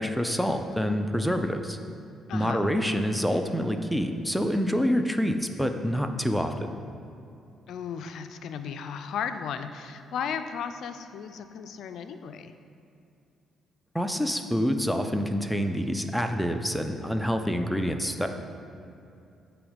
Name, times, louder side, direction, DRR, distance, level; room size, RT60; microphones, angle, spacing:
voice 1, 0.0-1.8 2.3-6.7 13.9-18.3, equal, ahead, 5 dB, 0.5 m, -27 dB
voice 2, 2.3-2.7 7.7-12.5, left 7 dB, 75° left, 9 dB, 0.4 m, -35 dB
8.1 x 3.1 x 5.1 m, 2.7 s
cardioid pair, 90°, 0 cm